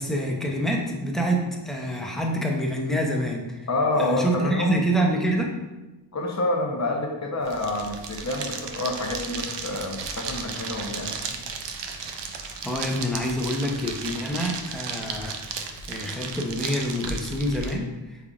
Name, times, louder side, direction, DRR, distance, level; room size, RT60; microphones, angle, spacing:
voice 1, 0.0-3.7 4.0-5.5 12.6-15.4 15.9-17.9, equal, ahead, -1 dB, 0.6 m, -26 dB
voice 2, 3.7-4.8 6.1-11.1, left 2 dB, 40° left, 2 dB, 0.7 m, -27 dB
sound 1, 7.4-17.7, right 5 dB, 75° right, 0.5 m, -34 dB
3.7 x 3.3 x 2.4 m, 1.1 s
cardioid pair, 45°, 44 cm